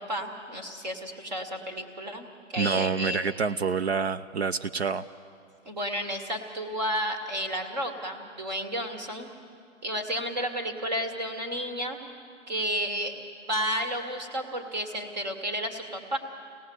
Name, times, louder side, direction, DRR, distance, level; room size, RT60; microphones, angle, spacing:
voice 1, 0.0-3.3 5.7-9.3 9.8-12.0 12.5-13.1 13.4-16.2, equal, 35° right, 6 dB, 2.1 m, -32 dB
voice 2, 2.6-5.0, right 5 dB, 60° right, 13 dB, 0.6 m, -27 dB
26.5 x 18.0 x 7.9 m, 2.4 s
hypercardioid pair, 180°, 37 cm